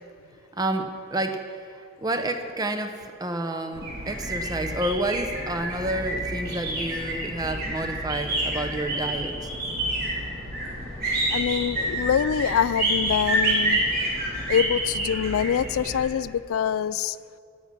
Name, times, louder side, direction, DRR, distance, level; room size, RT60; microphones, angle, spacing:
voice 1, 0.5-9.5, right 1 dB, 20° right, 6 dB, 0.8 m, -29 dB
sound 1, 3.7-16.0, right 1 dB, 45° right, 3.4 m, -28 dB
voice 2, 11.3-13.8 14.5-17.2, left 8 dB, 80° left, 17 dB, 0.3 m, -25 dB
14.0 x 6.0 x 9.7 m, 2.4 s
head